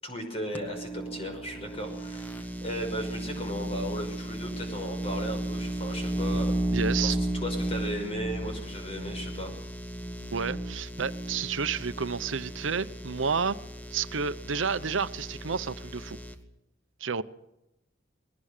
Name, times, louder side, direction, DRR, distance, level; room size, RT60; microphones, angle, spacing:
voice 1, 0.0-9.5, equal, 30° left, 3 dB, 5.6 m, -36 dB
sound 1, 0.5-16.3, right 1 dB, 10° left, 1.3 m, -34 dB
voice 2, 6.7-7.2 10.3-13.6 13.9-16.2 17.0-17.2, right 5 dB, 85° right, 13 dB, 0.8 m, -30 dB
20.5 x 19.0 x 6.7 m, 0.87 s
head